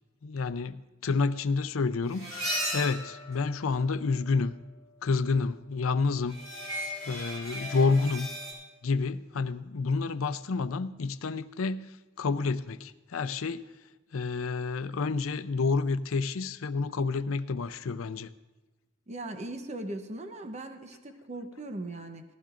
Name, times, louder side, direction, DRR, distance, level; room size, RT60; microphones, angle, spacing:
voice 1, 0.2-4.5 5.0-6.4 7.1-8.3 8.8-11.9 12.2-13.7 14.1-18.3, left 4 dB, 85° left, 13 dB, 0.5 m, -29 dB
sound 1, 2.1-4.1 6.3-8.5, equal, 70° right, 5.1 m, -36 dB
voice 2, 19.1-22.2, right 2 dB, 35° right, 6 dB, 0.8 m, -39 dB
18.5 x 15.0 x 2.5 m, 1.2 s
head